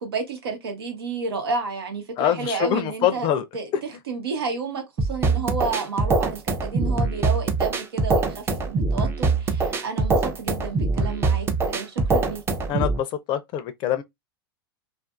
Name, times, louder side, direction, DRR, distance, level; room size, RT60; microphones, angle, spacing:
voice 1, 0.0-12.4, right 4 dB, 90° right, 1.0 m, -31 dB
voice 2, 2.2-3.4 12.7-14.0, left 10 dB, 40° left, 0.5 m, -24 dB
sound 1, 5.0-13.0, right 3 dB, 20° right, 0.5 m, -23 dB
2.5 x 2.5 x 2.4 m
hypercardioid pair, 115°, 12 cm